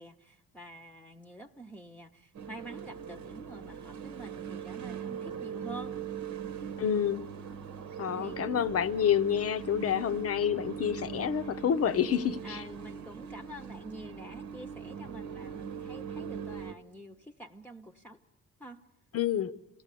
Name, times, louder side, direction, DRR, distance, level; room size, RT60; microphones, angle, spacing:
voice 1, 0.0-6.0 8.2-8.5 12.4-18.2 18.6-18.8, right 1 dB, 5° left, 0.8 m, -47 dB
sound 1, 2.3-16.7, right 7 dB, 70° right, 1.1 m, -40 dB
voice 2, 6.8-7.2 8.0-12.6 19.1-19.5, left 9 dB, 50° left, 0.7 m, -28 dB
27.5 x 16.5 x 8.3 m
cardioid pair, 90°, 30 cm